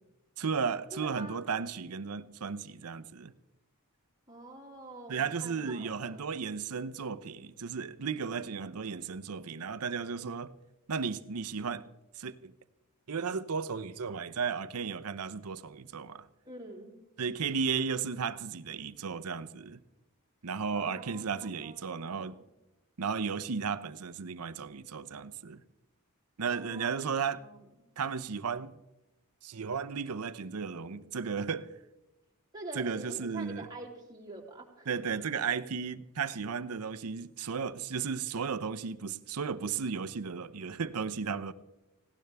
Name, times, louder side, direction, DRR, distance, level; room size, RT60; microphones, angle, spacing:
voice 1, 0.4-3.3 5.1-10.5 10.9-11.9 12.2-12.5 13.1-16.3 17.2-19.8 20.4-22.3 23.0-25.6 26.4-27.4 28.0-28.8 29.4-31.7 32.7-33.7 34.9-41.5, right 5 dB, 85° right, 0.7 m, -34 dB
voice 2, 0.9-1.4 4.3-6.4 16.4-16.9 20.7-22.5 26.4-26.9 27.3-27.6 32.5-34.9, right 2 dB, 20° right, 3.0 m, -46 dB
19.0 x 17.0 x 3.4 m
head